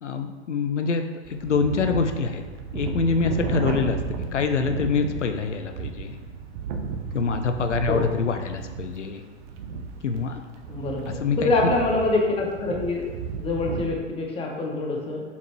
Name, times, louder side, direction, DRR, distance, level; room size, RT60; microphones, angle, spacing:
voice 1, 0.0-2.4 2.7-6.1 7.1-9.2 10.0-10.4 11.2-11.5, left 5 dB, 80° left, 7 dB, 0.6 m, -25 dB
sound 1, 1.2-13.9, right 5 dB, 40° right, 0.8 m, -33 dB
voice 2, 7.9-8.2 10.7-13.1 13.4-15.2, left 2 dB, 15° left, 0 dB, 1.0 m, -25 dB
7.0 x 4.4 x 3.1 m, 1.3 s
figure-of-eight pair, 100°, 35 cm